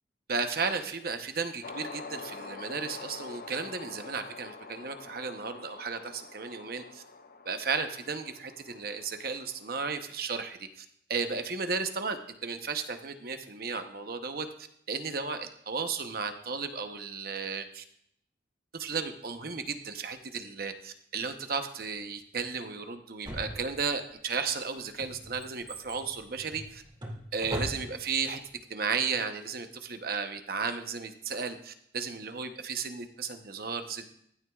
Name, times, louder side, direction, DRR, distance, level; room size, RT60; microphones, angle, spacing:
voice 1, 0.3-7.0 7.4-10.8 11.1-14.5 14.9-17.8 18.7-26.8 27.3-28.4 28.7-34.0, right 5 dB, 55° right, 7 dB, 0.9 m, -34 dB
sound 1, 1.6-10.2, left 4 dB, 50° left, 0.6 m, -46 dB
Drawer open or close, 23.2-24.1 24.7-28.2 28.5-28.6, right 1 dB, 30° right, 2.3 m, -39 dB
15.5 x 12.5 x 2.4 m, 0.71 s
head